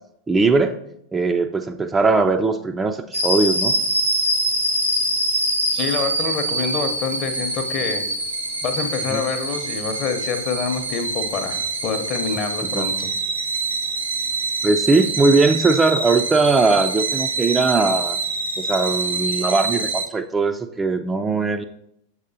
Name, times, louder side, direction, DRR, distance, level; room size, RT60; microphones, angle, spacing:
voice 1, 0.3-0.8 1.1-3.8 9.1-9.2 12.7-12.9 14.6-18.2 18.6-21.6, right 3 dB, 15° right, 7 dB, 0.3 m, -19 dB
Tea kettle boiling various levels of whistle, 3.1-20.0, right 2 dB, 80° right, 1.1 m, -25 dB
voice 2, 5.7-8.0 8.6-13.1, left 6 dB, 35° left, 7 dB, 0.7 m, -26 dB
6.4 x 6.3 x 2.7 m, 0.76 s
figure-of-eight pair, 90°, 0 cm